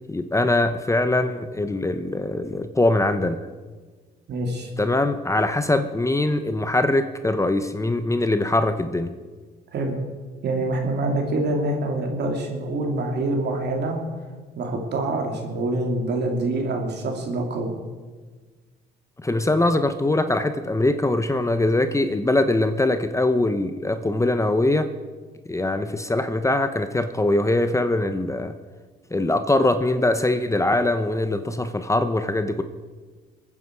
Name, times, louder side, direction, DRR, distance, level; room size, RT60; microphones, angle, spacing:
voice 1, 0.1-3.4 4.8-9.1 19.2-24.9 25.4-28.5 29.1-32.6, left 2 dB, 15° left, 9 dB, 1.0 m, -22 dB
voice 2, 4.3-4.7 9.7-10.0 10.4-14.0 14.5-17.7, right 2 dB, 60° right, 2 dB, 3.1 m, -25 dB
23.0 x 9.7 x 4.7 m, 1.4 s
supercardioid pair, 75°, 19 cm